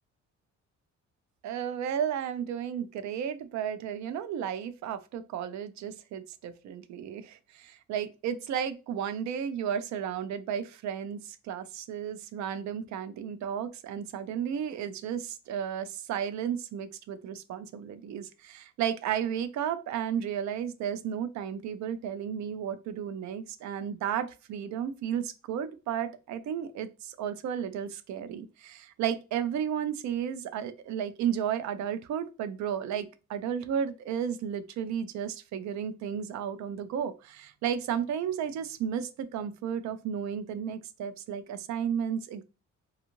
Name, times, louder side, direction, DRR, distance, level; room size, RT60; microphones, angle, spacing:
voice 1, 1.4-42.4, right 8 dB, 70° right, 0.4 m, -33 dB
2.6 x 2.4 x 2.8 m
cardioid pair, 90°, 30 cm